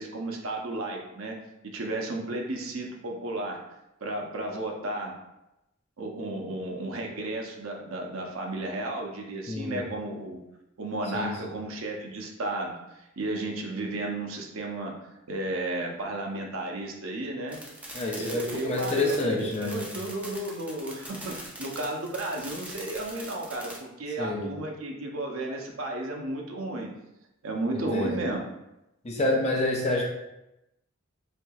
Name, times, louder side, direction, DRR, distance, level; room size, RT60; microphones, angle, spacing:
voice 1, 0.0-1.4 1.6-3.6 4.0-5.2 6.0-10.4 10.8-17.6 18.2-26.9 27.4-28.4, right 2 dB, 80° right, 1 dB, 0.7 m, -33 dB
voice 2, 9.5-9.9 11.1-11.5 17.9-19.9 24.2-24.5 27.7-28.2 29.0-30.0, left 2 dB, 30° left, -1 dB, 0.7 m, -28 dB
sound 1, 17.5-23.8, right 1 dB, 5° right, 0.6 m, -42 dB
4.3 x 2.8 x 2.4 m, 0.90 s
head